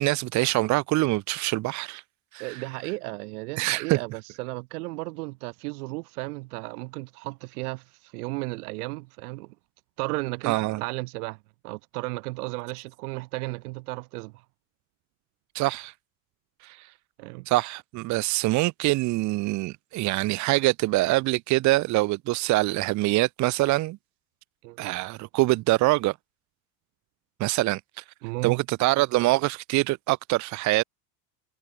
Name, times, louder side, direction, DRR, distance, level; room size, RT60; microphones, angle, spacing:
voice 1, 0.0-2.0 2.3-2.6 3.6-4.0 10.4-10.8 15.6-15.9 16.6-16.9 17.5-24.0 24.8-26.2 27.4-28.0 28.4-30.8, right 19 dB, 40° right, 1.8 m, -24 dB
voice 2, 2.4-7.8 8.1-9.5 10.0-11.4 11.6-14.3 17.2-17.5 24.6-24.8 28.2-28.6, right 24 dB, 70° right, 3.3 m, -34 dB
cardioid pair, 175°, 46 cm